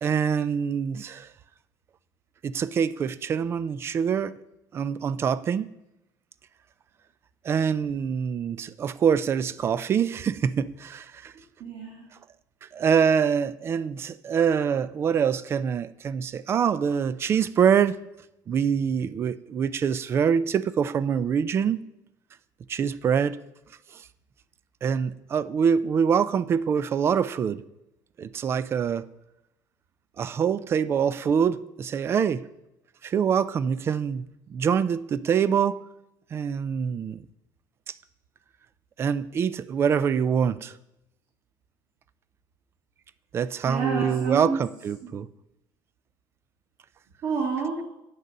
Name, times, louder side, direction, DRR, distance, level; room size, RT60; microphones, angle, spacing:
voice 1, 0.0-1.3 2.4-4.3 4.7-5.7 7.4-11.3 12.7-18.0 18.5-21.8 22.7-23.4 24.8-27.6 28.2-29.1 30.2-32.5 33.0-35.8 36.3-37.2 37.9-38.0 39.0-40.7 43.3-45.3, right 7 dB, 35° right, 0.3 m, -25 dB
voice 2, 11.6-12.0 43.6-44.6 45.0-45.1 47.2-47.8, right 5 dB, 55° right, 1.7 m, -29 dB
8.9 x 6.4 x 5.4 m
cardioid pair, 145°, 8 cm